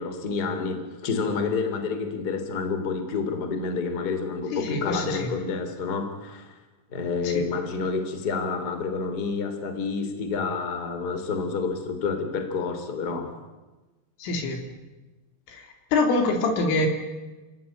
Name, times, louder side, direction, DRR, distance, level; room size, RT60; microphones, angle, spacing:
voice 1, 0.0-6.5 6.9-13.4, left 4 dB, 25° left, 8 dB, 2.8 m, -29 dB
voice 2, 4.5-5.3 7.2-7.4 14.2-14.7 15.5-16.9, left 3 dB, 70° left, 4 dB, 5.7 m, -25 dB
29.0 x 18.0 x 9.7 m, 1.1 s
omnidirectional pair, 5.9 m